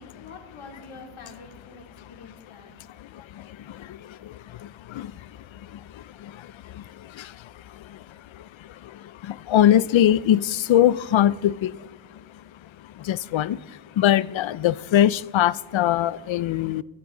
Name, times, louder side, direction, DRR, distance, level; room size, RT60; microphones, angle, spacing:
voice 1, 0.0-2.8, left 3 dB, 90° left, 3.1 m, -45 dB
voice 2, 9.5-11.7 13.1-13.6 14.0-16.8, left 11 dB, 70° left, 0.6 m, -20 dB
27.5 x 13.5 x 3.8 m
wide cardioid pair, 155°, 49 cm